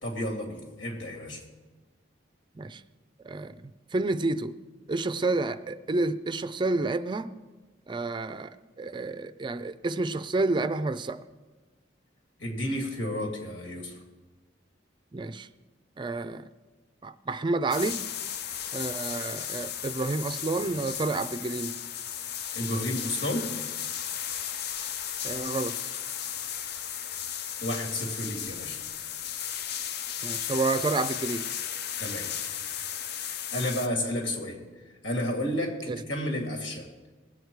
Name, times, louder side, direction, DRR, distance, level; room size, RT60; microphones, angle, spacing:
voice 1, 0.0-1.4 12.4-14.0 22.5-23.5 27.6-28.8 32.0-32.3 33.5-34.6 35.0-36.9, left 1 dB, 85° left, 2.6 m, -31 dB
voice 2, 3.2-4.6 4.9-7.3 7.9-11.2 15.1-15.5 16.0-16.4 17.0-18.0 18.7-21.8 25.2-25.8 30.2-31.5 35.9-36.0, right 3 dB, 25° right, 0.4 m, -29 dB
sound 1, 17.7-33.9, left 9 dB, 60° left, 0.6 m, -35 dB
19.5 x 8.1 x 4.7 m
head